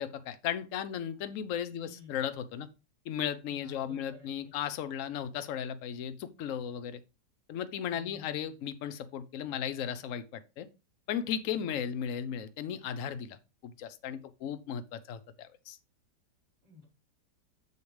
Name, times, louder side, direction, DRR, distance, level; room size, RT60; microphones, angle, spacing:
voice 1, 0.0-2.7 3.1-7.0 7.5-10.7 11.1-13.4 13.6-15.8, left 9 dB, 60° left, 0.9 m, -36 dB
voice 2, 1.7-2.2 3.5-4.3 7.8-8.6 11.5-11.9 16.6-16.8, left 4 dB, 25° right, 4.8 m, -53 dB
6.9 x 6.7 x 3.2 m
omnidirectional pair, 2.0 m